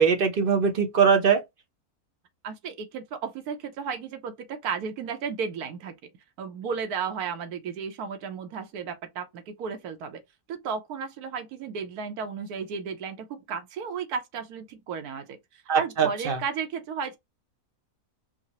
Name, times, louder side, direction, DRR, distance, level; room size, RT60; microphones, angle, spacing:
voice 1, 0.0-1.4 15.7-16.4, right 6 dB, 50° right, 0.7 m, -21 dB
voice 2, 2.4-6.1 6.4-10.2 10.5-17.2, right 6 dB, 90° right, 1.3 m, -34 dB
4.7 x 2.1 x 2.8 m
omnidirectional pair, 1.6 m